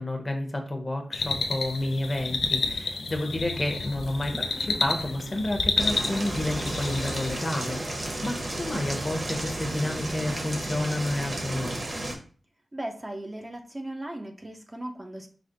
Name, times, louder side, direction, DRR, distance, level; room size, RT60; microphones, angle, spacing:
voice 1, 0.0-4.3 4.8-11.8, left 1 dB, 30° left, 4 dB, 0.8 m, -30 dB
sound 1, 1.1-7.5, left 3 dB, 80° left, 0.5 m, -30 dB
sound 2, 3.8-8.0 8.4-10.8, right 2 dB, 85° right, 0.7 m, -44 dB
sound 3, 5.8-12.1, right 1 dB, 45° right, 0.9 m, -33 dB
voice 2, 12.7-15.3, right 1 dB, 20° right, 4 dB, 0.5 m, -37 dB
4.9 x 2.0 x 3.8 m, 0.41 s
wide cardioid pair, 85°, 0 cm